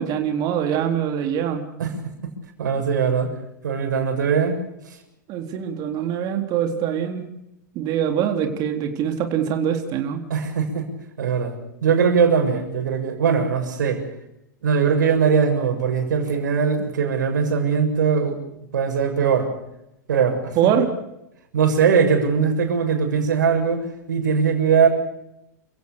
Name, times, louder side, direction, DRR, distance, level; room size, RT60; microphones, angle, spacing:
voice 1, 0.0-1.6 5.3-7.3 7.8-10.2 20.6-20.9, right 9 dB, 40° right, 4 dB, 3.9 m, -23 dB
voice 2, 2.6-3.3 3.6-4.6 4.9-5.0 10.3-10.9 11.2-11.5 11.8-14.0 14.6-18.4 18.7-19.5 20.1-20.6 21.5-24.9, right 6 dB, 75° right, 5 dB, 7.2 m, -20 dB
29.5 x 17.0 x 6.8 m, 0.83 s
hypercardioid pair, 110°, 10 cm